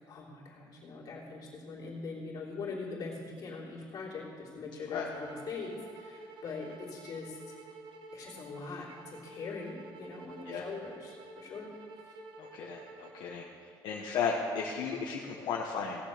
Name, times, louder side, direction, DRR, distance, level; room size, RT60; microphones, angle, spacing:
voice 1, 0.1-7.6 8.1-11.7 12.0-12.2, left 4 dB, 50° left, -5 dB, 3.2 m, -42 dB
sound 1, 5.1-13.5, right 2 dB, 70° right, 1.4 m, -50 dB
voice 2, 12.4-13.4 13.8-16.0, left 5 dB, 70° left, -2 dB, 1.3 m, -34 dB
17.0 x 7.5 x 6.7 m, 2.2 s
cardioid pair, 145°, 8 cm